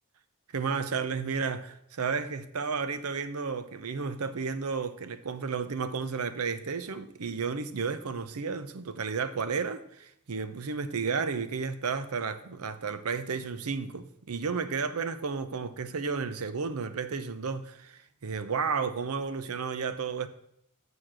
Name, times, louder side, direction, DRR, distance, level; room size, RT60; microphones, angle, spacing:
voice 1, 0.5-20.3, right 5 dB, 70° right, 0.7 m, -32 dB
7.0 x 6.3 x 7.3 m
head